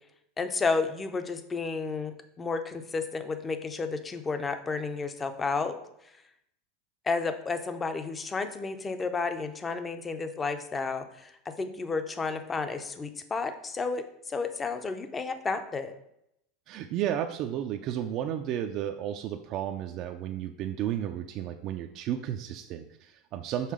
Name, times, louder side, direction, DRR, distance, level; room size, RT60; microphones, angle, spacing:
voice 1, 0.4-5.8 7.1-15.9, left 4 dB, 15° left, 9 dB, 0.5 m, -32 dB
voice 2, 16.7-23.7, right 10 dB, 45° right, 6 dB, 0.4 m, -33 dB
5.6 x 3.8 x 4.9 m, 0.78 s
supercardioid pair, 145°, 0 cm